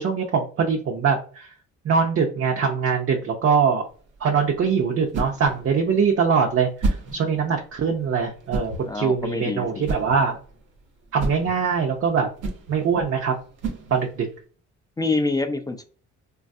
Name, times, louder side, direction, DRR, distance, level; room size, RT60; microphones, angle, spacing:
voice 1, 0.0-1.5 1.8-3.9 4.2-10.4 11.1-12.3 12.7-13.3 13.9-14.3, right 6 dB, 50° right, 1 dB, 0.6 m, -22 dB
sound 1, 3.8-14.4, right 2 dB, 85° right, 0.9 m, -33 dB
voice 2, 8.8-9.9 15.0-15.8, left 3 dB, 15° left, 7 dB, 0.3 m, -26 dB
3.1 x 2.3 x 2.6 m, 0.42 s
cardioid pair, 90°, 30 cm